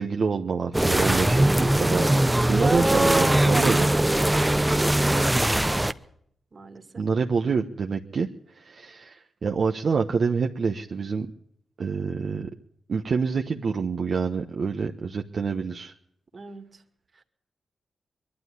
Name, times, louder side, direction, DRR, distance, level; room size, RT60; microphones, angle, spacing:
voice 1, 0.0-3.9 7.0-8.3 8.5-11.3 11.8-12.5 12.9-15.9, right 5 dB, 55° right, 3 dB, 1.2 m, -27 dB
sound 1, 0.7-5.9, right 1 dB, 10° right, 0.8 m, -21 dB
voice 2, 3.6-5.8 6.5-7.0 16.3-16.8 17.1-17.2, right 3 dB, 40° right, 6 dB, 2.4 m, -41 dB
22.5 x 12.0 x 9.8 m, 0.69 s
cardioid pair, 100°, 0 cm